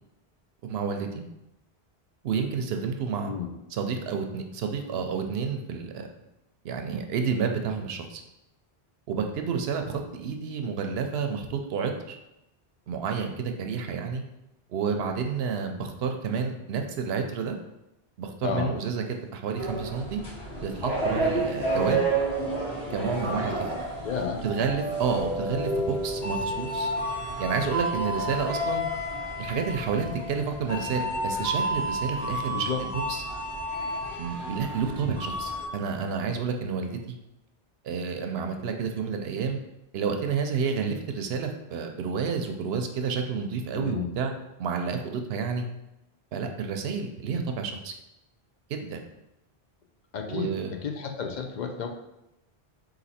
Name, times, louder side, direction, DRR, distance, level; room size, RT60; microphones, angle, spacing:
voice 1, 0.6-1.2 2.2-3.3 3.7-6.1 6.6-8.2 9.1-12.2 12.9-14.2 14.7-17.5 18.2-19.0 19.3-20.2 20.6-22.0 22.9-23.6 24.4-26.9 27.4-28.9 29.4-32.7 33.1-33.2 34.2-37.2 37.8-39.6 39.9-44.3 44.6-45.6 46.3-47.9 48.7-49.1 50.3-50.7, right 5 dB, 75° right, 5 dB, 0.8 m, -30 dB
voice 2, 18.4-18.7 24.0-24.4 32.5-32.8 43.7-44.1 50.1-51.9, left 7 dB, 55° left, 3 dB, 0.6 m, -32 dB
sound 1, 19.6-35.7, right 1 dB, 90° left, 1.3 m, -30 dB
sound 2, 20.1-22.0 23.2-29.2, left 4 dB, 35° right, 0.7 m, -41 dB
4.1 x 2.7 x 4.1 m, 0.89 s
omnidirectional pair, 1.1 m